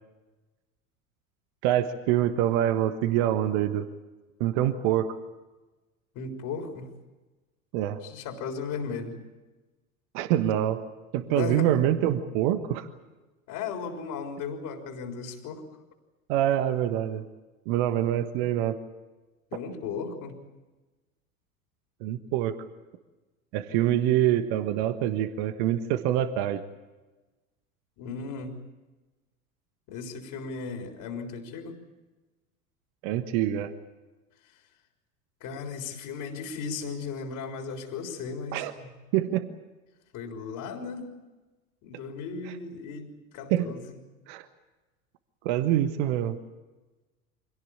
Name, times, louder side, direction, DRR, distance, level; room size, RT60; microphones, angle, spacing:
voice 1, 1.6-3.9 4.4-5.1 7.7-8.0 10.1-10.8 11.1-12.9 16.3-17.2 17.7-18.8 22.0-22.6 23.5-26.6 33.0-33.7 38.5-38.7 39.1-39.5 43.5-43.7 44.3-44.5 45.4-46.4, right 12 dB, 55° right, 10 dB, 1.4 m, -25 dB
voice 2, 6.2-6.9 8.0-9.1 11.3-11.7 13.5-15.6 19.5-20.4 23.7-23.8 28.0-28.6 29.9-31.8 35.4-38.9 40.1-41.1 41.8-44.0, left 5 dB, 50° left, 3 dB, 3.8 m, -36 dB
25.0 x 18.0 x 8.7 m, 1.2 s
figure-of-eight pair, 75°, 43 cm